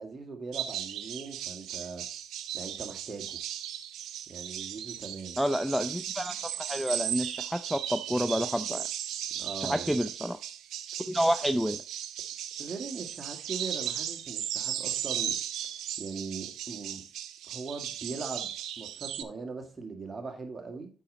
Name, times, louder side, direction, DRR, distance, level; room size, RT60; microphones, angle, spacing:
voice 1, 0.0-2.1 2.5-3.4 4.3-5.4 9.3-10.0 12.6-15.4 16.0-17.0 17.5-18.5 18.8-20.9, right 4 dB, 30° right, 2.1 m, -40 dB
sound 1, 0.5-19.2, right 10 dB, 80° right, 0.6 m, -36 dB
voice 2, 5.4-8.9 9.6-10.4 11.1-11.8, equal, ahead, 0.5 m, -29 dB
8.5 x 5.0 x 4.0 m
cardioid pair, 90°, 0 cm